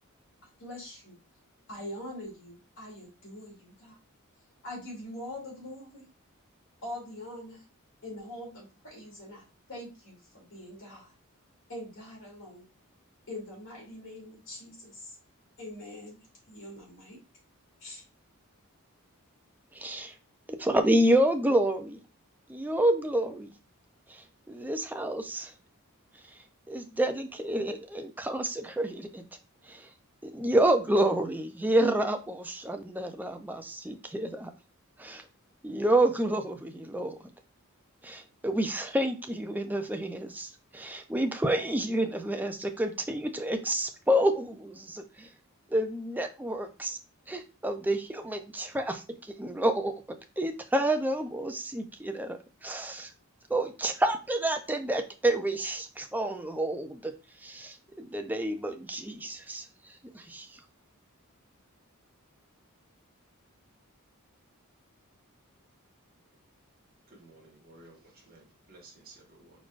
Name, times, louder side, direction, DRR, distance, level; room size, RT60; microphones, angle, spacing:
voice 1, 0.6-1.2 1.7-4.0 4.6-6.0 6.8-7.6 8.0-9.4 9.7-11.1 11.7-12.6 13.3-15.1 15.6-16.2 16.5-17.2 17.8-18.0, left 1 dB, 60° left, -4 dB, 2.6 m, -43 dB
voice 2, 19.7-20.1 20.5-22.0 22.5-23.5 24.1-25.5 26.7-29.2 29.7-29.9 30.2-34.5 35.0-35.2 35.6-37.2 38.0-45.3 45.7-47.0 47.3-53.1 53.5-57.1 57.4-59.6 60.0-60.5, right 1 dB, 10° right, 6 dB, 0.4 m, -29 dB
voice 3, 67.1-69.6, right 2 dB, 45° right, -2 dB, 1.5 m, -55 dB
4.6 x 4.2 x 2.5 m, 0.31 s
head